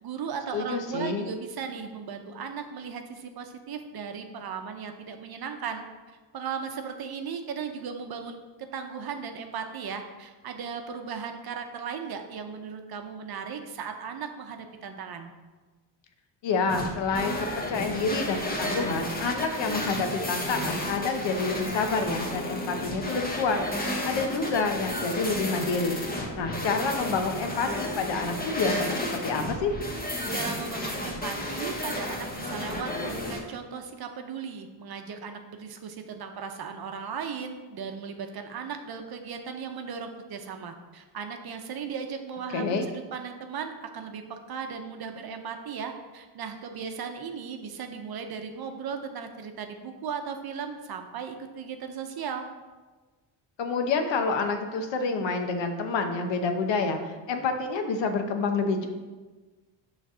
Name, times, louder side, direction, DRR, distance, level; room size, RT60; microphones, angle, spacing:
voice 1, 0.0-15.3 30.3-42.8 43.1-52.4, right 6 dB, 50° right, 5 dB, 0.8 m, -37 dB
voice 2, 0.5-1.3 16.4-23.6 24.0-29.7 42.5-42.9 53.6-58.9, left 4 dB, 70° left, 6 dB, 0.9 m, -28 dB
sound 1, 16.7-33.4, left 1 dB, 20° left, 1.1 m, -32 dB
6.9 x 3.3 x 6.0 m, 1.3 s
cardioid pair, 120°, 46 cm